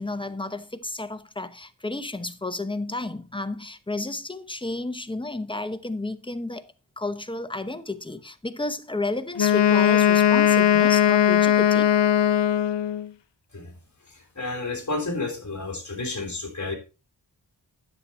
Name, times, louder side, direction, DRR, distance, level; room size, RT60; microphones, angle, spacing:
voice 1, 0.0-11.9, left 2 dB, 10° left, 0.9 m, -32 dB
Wind instrument woodwind instrument, 9.4-13.1, left 10 dB, 75° left, 0.7 m, -19 dB
voice 2, 14.1-16.7, left 3 dB, 40° left, 3.5 m, -31 dB
9.9 x 7.9 x 4.2 m
wide cardioid pair, 55°, 43 cm